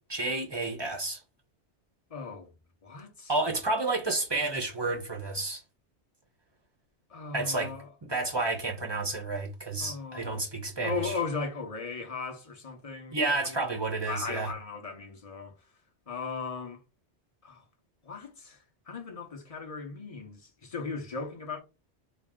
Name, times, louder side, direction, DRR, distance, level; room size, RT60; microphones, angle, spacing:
voice 1, 0.1-1.2 3.3-5.6 7.3-7.7 8.0-11.2 13.1-14.5, right 2 dB, 25° right, 0.9 m, -30 dB
voice 2, 2.1-2.5 2.8-3.3 7.1-7.9 9.8-10.5 10.8-13.6 14.1-15.5 16.1-16.8 17.4-17.6 18.0-18.6 18.9-21.6, left 4 dB, 35° left, 0.9 m, -37 dB
4.1 x 2.0 x 3.7 m
omnidirectional pair, 1.2 m